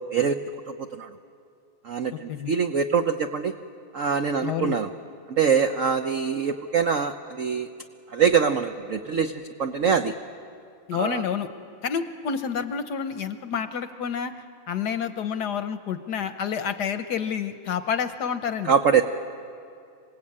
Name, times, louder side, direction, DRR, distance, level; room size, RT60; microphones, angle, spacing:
voice 1, 0.7-1.1 1.8-3.5 3.9-4.9 5.3-7.7 8.1-10.2 11.0-11.2 18.6-19.0, right 6 dB, 90° right, 7 dB, 0.7 m, -24 dB
voice 2, 4.4-4.8 10.9-11.5 11.8-18.7, left 7 dB, 60° left, 10 dB, 1.2 m, -29 dB
27.5 x 18.5 x 8.7 m, 2.4 s
omnidirectional pair, 2.3 m